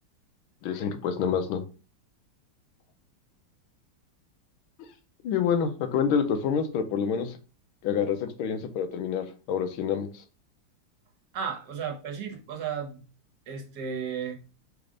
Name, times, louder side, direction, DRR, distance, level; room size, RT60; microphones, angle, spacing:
voice 1, 0.6-1.6 5.2-7.3 7.8-10.2, left 7 dB, 85° left, 8 dB, 1.5 m, -27 dB
voice 2, 11.3-13.0 13.5-14.4, right 7 dB, 60° right, 3 dB, 1.4 m, -34 dB
3.9 x 3.4 x 3.6 m, 0.35 s
omnidirectional pair, 2.2 m